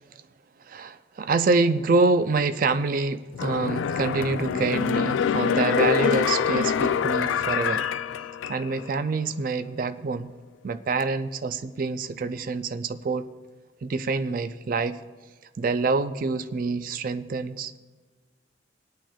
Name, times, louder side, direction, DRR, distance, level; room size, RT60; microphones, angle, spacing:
voice 1, 0.6-7.8 8.5-10.3 10.6-13.3 13.8-15.0 15.6-17.8, right 3 dB, 45° right, 0.4 m, -26 dB
sound 1, 3.3-8.9 9.3-9.4, left 7 dB, 85° left, 0.3 m, -25 dB
24.5 x 8.9 x 2.3 m
head